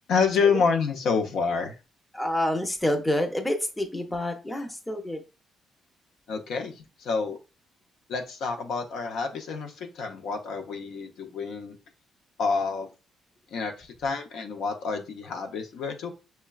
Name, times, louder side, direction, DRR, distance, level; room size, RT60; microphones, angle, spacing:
voice 1, 0.1-1.7 6.3-7.4 8.1-11.8 12.4-12.9 13.5-16.1, left 5 dB, 75° left, 4 dB, 0.5 m, -28 dB
voice 2, 2.1-5.2, left 1 dB, 10° left, 5 dB, 0.6 m, -28 dB
5.5 x 2.2 x 2.3 m, 0.31 s
cardioid pair, 90°, 0 cm